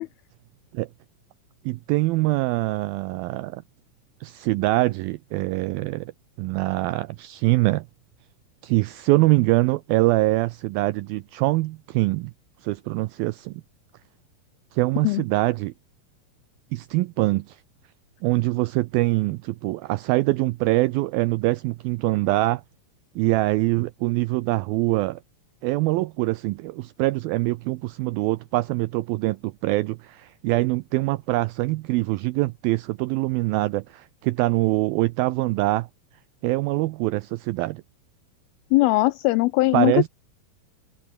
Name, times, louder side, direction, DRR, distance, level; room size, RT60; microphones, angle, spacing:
voice 1, 1.7-3.6 4.2-6.1 6.4-7.9 8.6-12.3 12.6-13.6 14.7-15.7 16.7-17.6 18.2-22.6 23.2-25.2 25.6-35.9 36.4-37.8 39.7-40.1, right 20 dB, 85° right, 2.1 m, -24 dB
voice 2, 38.7-40.1, left 20 dB, 85° left, 2.2 m, -20 dB
omnidirectional pair, 4.8 m